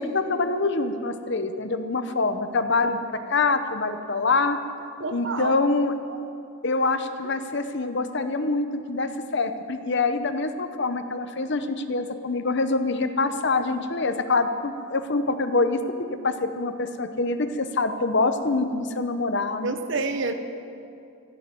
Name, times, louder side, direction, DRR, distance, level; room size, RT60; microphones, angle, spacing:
voice 1, 0.0-4.6 5.1-5.9 6.6-15.8 16.1-19.8, left 3 dB, 50° left, 9 dB, 0.8 m, -25 dB
voice 2, 5.0-5.5 19.6-20.3, right 3 dB, 55° right, 7 dB, 1.0 m, -28 dB
16.0 x 11.5 x 7.7 m, 2.5 s
head